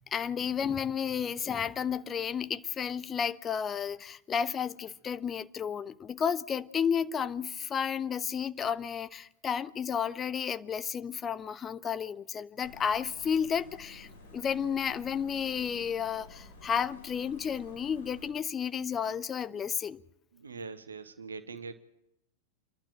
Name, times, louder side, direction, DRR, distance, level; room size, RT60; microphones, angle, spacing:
voice 1, 0.1-20.0, left 7 dB, 25° left, 0.8 m, -32 dB
sound 1, 12.6-18.3, left 2 dB, 55° left, 5.9 m, -52 dB
voice 2, 20.3-21.7, right 4 dB, 70° right, 1.3 m, -42 dB
28.5 x 12.0 x 8.8 m
figure-of-eight pair, 90°, 0 cm